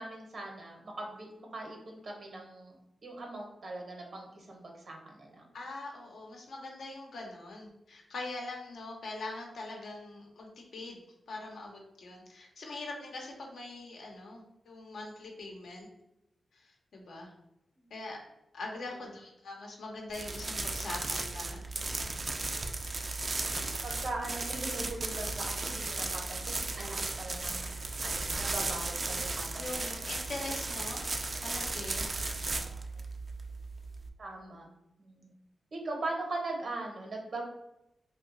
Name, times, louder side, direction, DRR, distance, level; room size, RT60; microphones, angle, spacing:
voice 1, 0.0-2.8 3.0-5.4 17.7-17.9 18.9-19.0 23.8-29.9 32.6-33.0 34.2-34.7 35.0-35.3 35.7-37.4, right 2 dB, 65° right, 1 dB, 0.8 m, -41 dB
voice 2, 5.5-11.0 11.3-15.9 16.5-17.3 17.9-18.2 18.5-21.6 29.6-31.1 31.4-32.1, left 2 dB, 80° left, 0 dB, 0.8 m, -42 dB
sound 1, 20.1-34.1, right 3 dB, 45° right, 0.4 m, -35 dB
2.8 x 2.2 x 3.8 m, 0.87 s
cardioid pair, 65°, 0 cm